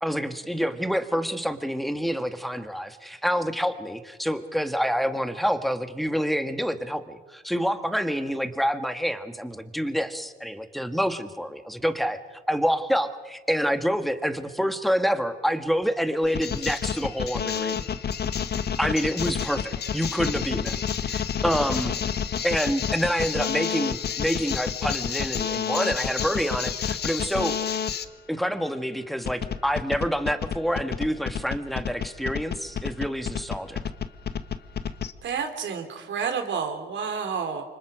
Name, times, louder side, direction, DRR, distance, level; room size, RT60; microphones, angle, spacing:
voice 1, 0.0-17.8 18.8-20.8 21.0-21.9 22.4-27.6 28.3-33.8, equal, ahead, 8 dB, 1.8 m, -27 dB
sound 1, 16.2-28.0 29.2-35.1, left 8 dB, 55° left, 1.2 m, -29 dB
voice 2, 35.2-37.6, right 6 dB, 65° right, 6 dB, 3.6 m, -30 dB
29.0 x 25.0 x 5.1 m, 1.3 s
cardioid pair, 90°, 20 cm